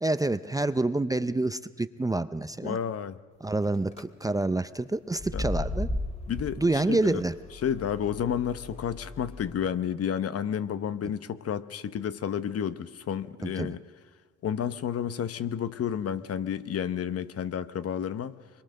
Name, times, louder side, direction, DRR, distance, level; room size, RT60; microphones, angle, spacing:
voice 1, 0.0-2.8 3.4-5.9 6.6-7.3 13.4-13.7, right 2 dB, 10° right, 12 dB, 0.6 m, -27 dB
voice 2, 2.6-3.2 5.3-5.4 6.3-7.2 7.6-13.8 14.4-18.3, left 8 dB, 50° left, 13 dB, 0.9 m, -31 dB
sound 1, 3.6-4.0 5.1-9.5, left 1 dB, 20° left, 1.7 m, -36 dB
24.0 x 22.0 x 6.5 m, 1.5 s
cardioid pair, 90°, 30 cm